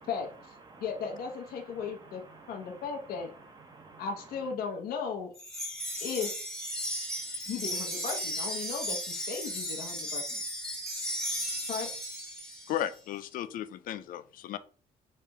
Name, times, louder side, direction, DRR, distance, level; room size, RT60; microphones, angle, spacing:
voice 1, 0.0-4.5, right 3 dB, 25° right, 0.8 m, -53 dB
voice 2, 0.8-2.2 2.5-3.3 4.0-5.3 6.0-6.3 7.5-10.4 11.7-11.9, left 6 dB, 80° left, 0.8 m, -36 dB
Wind chime, 5.4-12.9, equal, 5° left, 0.8 m, -35 dB
voice 3, 12.7-14.6, left 11 dB, 65° left, 0.4 m, -35 dB
3.3 x 2.9 x 3.4 m
cardioid pair, 130°, 15 cm